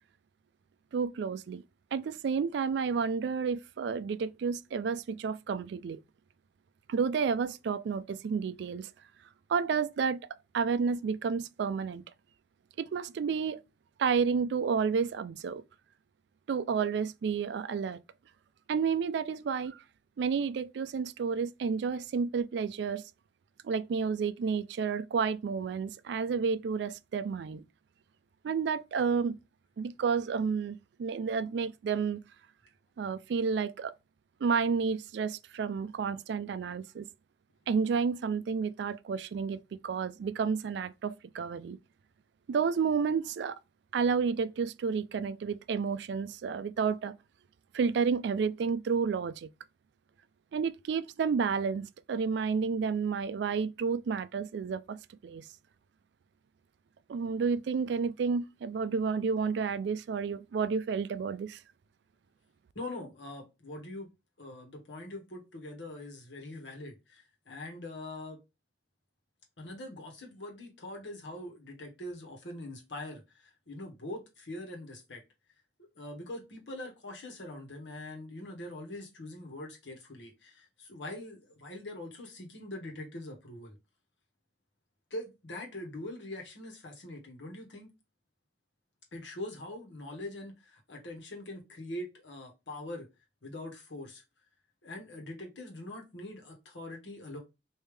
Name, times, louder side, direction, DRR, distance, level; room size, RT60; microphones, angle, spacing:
voice 1, 0.9-1.6 1.9-6.0 6.9-8.9 9.5-10.2 10.5-12.0 12.8-13.6 14.0-15.6 16.5-18.0 18.7-19.8 20.2-23.0 23.6-27.6 28.4-29.4 29.8-32.2 33.0-33.9 34.4-37.1 37.7-41.8 42.5-43.6 43.9-47.2 47.7-49.5 50.5-55.5 57.1-61.6, right 5 dB, 65° right, 0.3 m, -31 dB
voice 2, 62.7-64.1 64.4-68.4 69.6-75.2 75.9-83.7 85.1-87.9 89.1-93.1 93.4-94.2 94.8-97.4, left 1 dB, 80° left, 1.3 m, -43 dB
3.3 x 2.7 x 3.2 m
head